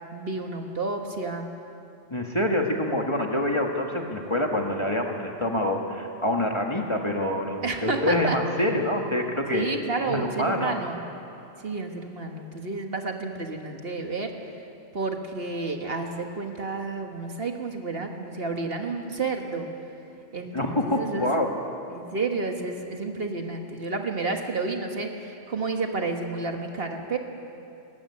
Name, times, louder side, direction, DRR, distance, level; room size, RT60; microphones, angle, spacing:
voice 1, 0.0-1.5 7.6-8.4 9.5-11.0 11.6-14.3 14.9-19.7 20.3-21.3 21.9-27.2, right 3 dB, 50° right, 3 dB, 1.6 m, -30 dB
voice 2, 2.1-9.7 10.0-10.8 20.5-21.5, left 1 dB, 25° left, 1 dB, 1.6 m, -26 dB
19.5 x 14.5 x 9.7 m, 2.7 s
omnidirectional pair, 1.3 m